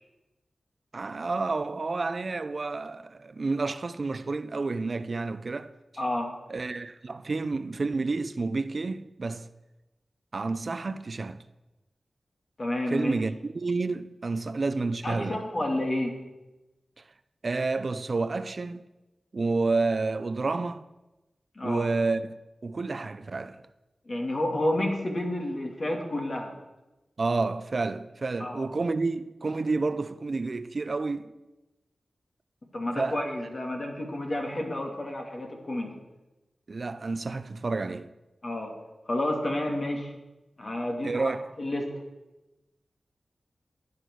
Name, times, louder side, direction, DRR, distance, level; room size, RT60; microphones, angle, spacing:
voice 1, 0.9-5.7 6.5-9.5 10.3-11.4 12.9-15.4 17.4-18.8 19.3-20.8 21.6-22.3 22.6-23.6 27.2-31.3 33.0-33.2 36.7-38.1 41.0-41.4, right 3 dB, 55° right, 0.6 m, -30 dB
voice 2, 6.0-6.3 12.6-13.2 15.0-16.2 21.5-21.9 24.1-26.5 28.4-28.6 32.7-36.0 38.4-38.8 39.1-40.1 40.6-41.3 41.6-41.9, left 1 dB, 50° left, 2.9 m, -30 dB
12.5 x 9.6 x 6.4 m
cardioid pair, 60°, 0 cm